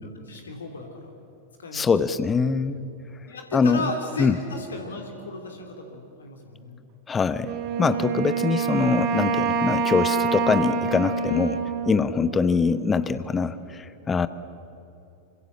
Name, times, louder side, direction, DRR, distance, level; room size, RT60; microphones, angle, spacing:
voice 1, 0.0-1.1 1.6-1.9 3.3-6.8 8.1-8.2, left 2 dB, 70° left, 3 dB, 3.3 m, -35 dB
voice 2, 1.7-2.8 3.5-3.8 4.2-4.4 7.1-7.5 7.8-14.3, left 5 dB, 20° left, 14 dB, 1.0 m, -23 dB
Wind instrument woodwind instrument, 7.4-12.9, right 5 dB, 40° right, 2.3 m, -26 dB
26.5 x 25.0 x 7.4 m, 2.9 s
figure-of-eight pair, 90°, 0 cm